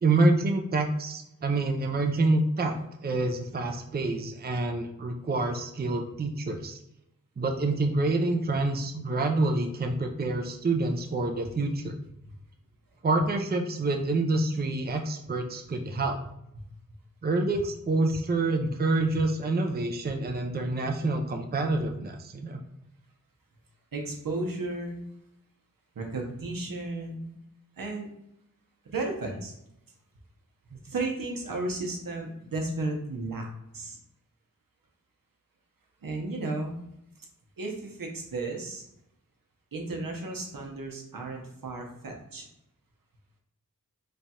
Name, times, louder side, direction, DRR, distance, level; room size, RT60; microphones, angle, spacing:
voice 1, 0.0-2.8 3.0-6.8 7.4-11.9 13.0-16.2 17.2-22.6, right 2 dB, 30° right, 4 dB, 0.4 m, -27 dB
voice 2, 23.9-25.0 26.0-27.3 27.8-28.1 28.8-29.5 30.7-33.5 33.7-34.0 36.0-36.8 37.6-38.8 39.7-42.5, right 2 dB, 85° right, 1 dB, 0.8 m, -34 dB
3.2 x 2.3 x 4.1 m, 0.81 s
wide cardioid pair, 70°, 33 cm